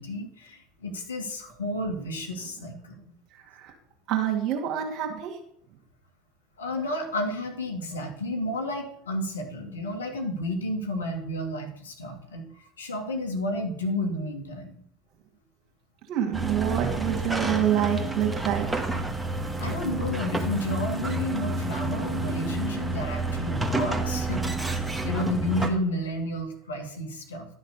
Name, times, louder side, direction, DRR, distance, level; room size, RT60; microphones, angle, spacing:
voice 1, 0.0-3.1 6.6-14.7 19.6-27.5, left 1 dB, 80° left, 3 dB, 2.3 m, -31 dB
voice 2, 3.3-3.7 4.1-5.4 16.1-18.9, right 10 dB, 50° right, 2 dB, 2.1 m, -27 dB
sound 1, 16.3-25.7, right 2 dB, 10° right, 1.8 m, -29 dB
11.5 x 6.5 x 6.9 m, 0.67 s
figure-of-eight pair, 70°, 0 cm